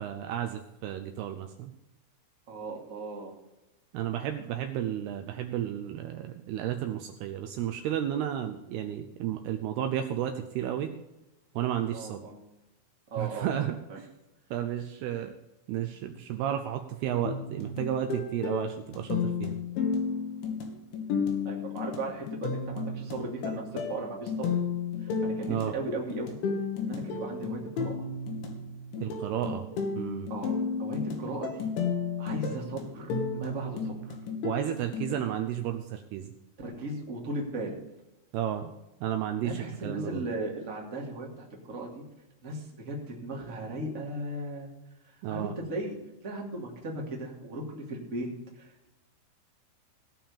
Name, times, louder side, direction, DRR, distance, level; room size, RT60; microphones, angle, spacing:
voice 1, 0.0-1.7 3.9-10.9 11.6-12.2 13.2-14.1 14.5-15.3 15.7-19.6 25.5-25.7 29.0-29.7 30.0-30.3 34.4-36.3 38.3-38.7 39.0-40.3 45.2-45.5, right 10 dB, 90° right, 6 dB, 2.3 m, -32 dB
voice 2, 2.5-3.3 11.9-12.4 13.1-13.7 21.4-24.5 25.0-26.4 26.8-28.1 30.3-31.7 32.2-34.2 36.6-37.8 39.4-42.0 42.4-44.7 45.0-45.9 46.2-48.9, right 2 dB, 25° right, -1 dB, 2.0 m, -37 dB
sound 1, 17.2-35.2, left 5 dB, 70° left, 4.1 m, -33 dB
17.5 x 5.9 x 7.2 m, 0.96 s
omnidirectional pair, 5.6 m